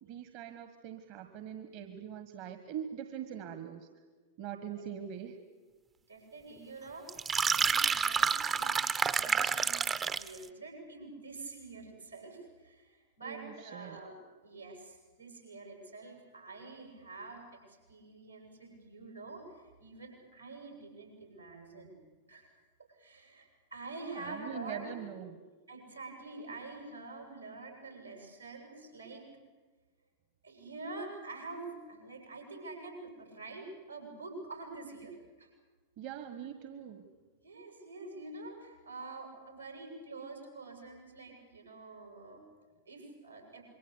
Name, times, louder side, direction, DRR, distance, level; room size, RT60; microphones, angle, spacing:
voice 1, 0.0-3.9 4.4-5.4 13.2-14.0 24.1-25.4 36.0-37.1, right 9 dB, 45° right, 9 dB, 1.6 m, -43 dB
voice 2, 6.1-7.1 7.5-8.9 9.2-14.1 14.4-22.0 22.3-22.5 22.9-24.9 25.7-29.3 30.4-35.5 37.4-42.4 42.9-43.6, right 3 dB, 85° right, 2 dB, 7.6 m, -46 dB
sound 1, 7.1-10.4, right 6 dB, 20° right, 0.9 m, -29 dB
26.5 x 23.5 x 8.4 m, 1.4 s
figure-of-eight pair, 90°, 0 cm